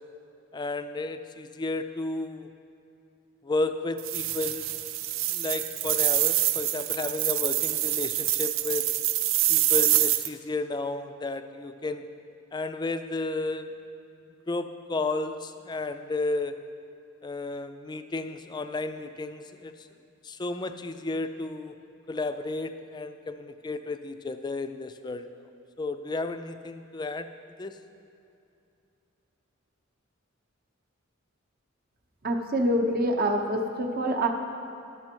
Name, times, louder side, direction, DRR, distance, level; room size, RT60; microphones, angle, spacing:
voice 1, 0.5-2.5 3.4-4.7 5.3-8.9 9.5-12.0 12.5-13.7 14.5-16.5 17.2-19.7 20.2-21.8 22.1-25.3 25.8-27.3 27.6-27.8, left 2 dB, 20° left, 9 dB, 0.3 m, -32 dB
sound 1, 4.0-10.3, right 13 dB, 70° right, 0.4 m, -26 dB
voice 2, 32.2-34.3, right 1 dB, 45° right, 4 dB, 0.8 m, -26 dB
11.5 x 6.8 x 4.5 m, 2.7 s
head